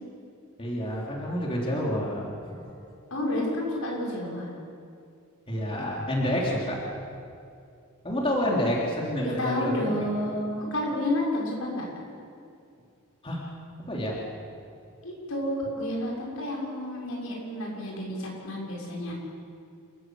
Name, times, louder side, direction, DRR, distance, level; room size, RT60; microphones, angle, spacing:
voice 1, 0.6-2.9 5.5-6.8 8.0-10.1 13.2-13.4 13.9-14.2, equal, 25° left, -3 dB, 3.6 m, -29 dB
voice 2, 3.1-4.5 9.4-11.8 15.0-19.1, left 1 dB, 80° left, -2 dB, 6.1 m, -30 dB
28.5 x 14.5 x 7.9 m, 2.4 s
head